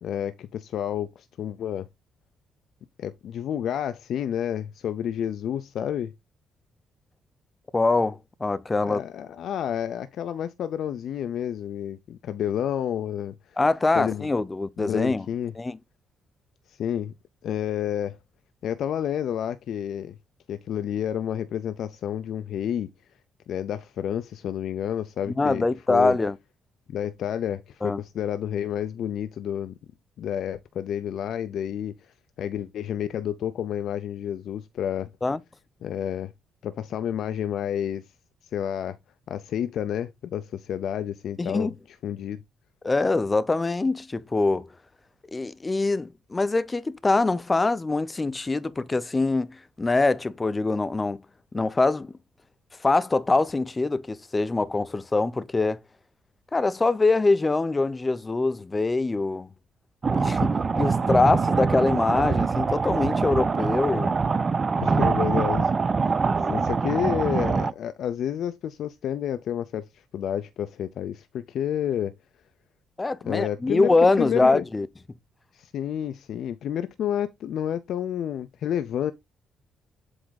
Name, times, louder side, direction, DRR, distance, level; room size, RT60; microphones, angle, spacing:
voice 1, 0.0-1.9 3.0-6.1 8.8-13.6 13.9-14.3 14.8-15.5 16.7-17.1 17.4-18.2 18.6-20.2 20.5-22.9 23.5-26.2 26.9-29.7 30.2-35.1 35.8-36.3 36.6-38.0 38.5-39.0 39.3-42.4 64.8-65.7 66.5-72.1 73.2-74.6 75.5-79.1, left 9 dB, 70° left, 0.6 m, -30 dB
voice 2, 7.7-9.0 13.6-15.2 15.6-15.8 25.4-26.4 27.8-28.0 35.2-35.4 41.4-41.7 42.8-44.7 45.3-51.2 51.5-52.1 52.8-55.8 56.5-59.5 60.1-64.2 64.8-65.0 66.2-66.6 73.0-74.9, left 3 dB, 25° left, 0.6 m, -24 dB
sound 1, 60.0-67.7, right 4 dB, 35° right, 0.6 m, -24 dB
7.9 x 3.5 x 4.1 m
cardioid pair, 90°, 0 cm